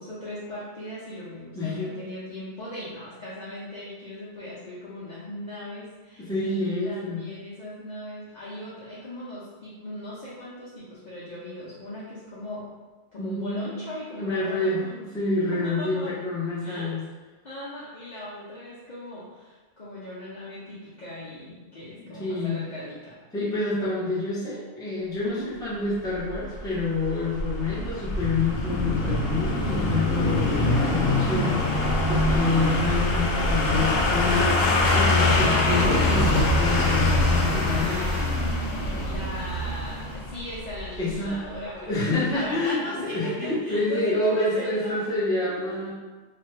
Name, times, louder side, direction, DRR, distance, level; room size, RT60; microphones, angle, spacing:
voice 1, 0.0-12.7 13.1-15.0 15.5-16.1 16.6-16.9 17.4-23.2 25.2-25.5 37.6-45.2 45.5-45.8, left 1 dB, 50° left, -10 dB, 0.6 m, -38 dB
voice 2, 1.5-1.9 6.2-7.2 13.2-13.7 14.1-17.0 22.0-22.6 23.3-38.0 38.8-39.1 41.0-41.5 41.9-45.9, left 3 dB, 5° left, -8 dB, 0.6 m, -28 dB
sound 1, 26.3-41.2 41.5-41.6, left 2 dB, 85° left, 1.0 m, -25 dB
sound 2, 27.8-36.3 36.9-37.0, left 1 dB, 30° left, 1.1 m, -28 dB
sound 3, 29.3-40.2, right 1 dB, 75° right, 0.9 m, -37 dB
3.2 x 2.2 x 3.1 m, 1.3 s
omnidirectional pair, 1.3 m